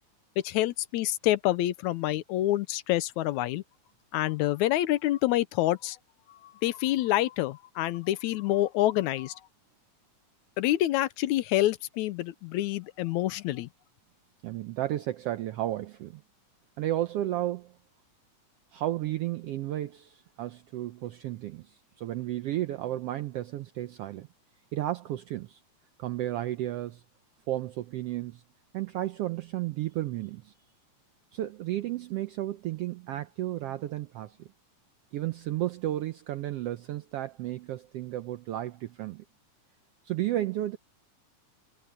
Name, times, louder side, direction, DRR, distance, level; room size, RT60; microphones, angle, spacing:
voice 1, 0.4-3.6 4.1-6.0 6.6-9.4 10.6-13.7, left 15 dB, 80° left, 2.0 m, -27 dB
voice 2, 14.4-16.2 16.8-17.7 18.7-24.3 24.7-25.6 26.0-27.0 27.5-28.4 28.7-30.5 31.3-34.5 35.1-39.2 40.0-40.8, right 14 dB, 80° right, 1.3 m, -33 dB
omnidirectional pair, 3.4 m